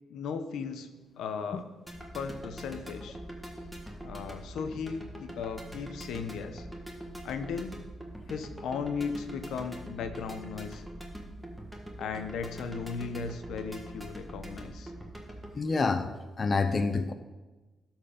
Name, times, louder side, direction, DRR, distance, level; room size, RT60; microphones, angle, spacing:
voice 1, 0.1-0.9 1.2-1.7 2.1-3.2 4.0-6.7 7.2-7.8 8.3-10.9 12.0-14.9, left 5 dB, 80° left, 8 dB, 0.8 m, -36 dB
sound 1, 1.9-15.6, right 1 dB, 5° right, 1.5 m, -43 dB
voice 2, 15.6-16.1 16.4-17.1, left 4 dB, 35° left, 9 dB, 0.5 m, -27 dB
12.5 x 4.6 x 5.1 m, 1.2 s
cardioid pair, 115°, 0 cm